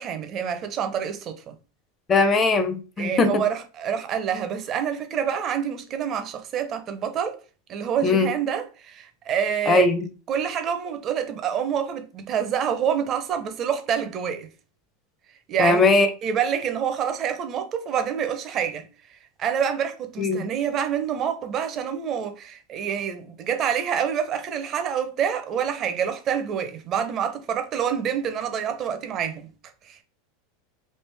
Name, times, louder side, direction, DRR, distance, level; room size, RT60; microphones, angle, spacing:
voice 1, 0.0-1.5 3.0-7.4 7.7-9.9 10.3-14.5 15.5-15.8 16.2-18.9 19.4-29.5 29.8-30.0, right 8 dB, 35° right, 0.6 m, -27 dB
voice 2, 2.1-3.4 8.0-8.3 9.7-10.0 15.6-16.1 20.2-20.4, left 3 dB, 25° left, 0.6 m, -19 dB
3.2 x 2.5 x 3.3 m
supercardioid pair, 135°, 0 cm